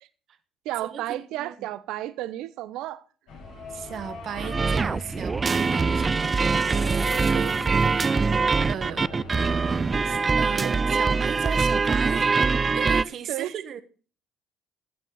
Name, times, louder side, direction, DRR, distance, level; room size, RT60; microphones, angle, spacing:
voice 1, 0.6-3.0 7.3-7.6 8.8-8.9 10.6-10.8 13.3-13.5, right 14 dB, 70° right, 0.8 m, -32 dB
sound 1, 3.3-10.5, left 1 dB, 75° left, 4.9 m, -40 dB
voice 2, 3.7-6.4 8.7-9.1 10.0-12.3 12.6-13.8, right 8 dB, 55° right, 1.4 m, -36 dB
sound 2, 3.9-8.0, equal, 5° left, 1.6 m, -42 dB
sound 3, 4.4-13.0, right 4 dB, 30° right, 0.5 m, -23 dB
15.0 x 7.4 x 4.0 m
hypercardioid pair, 65°, 0 cm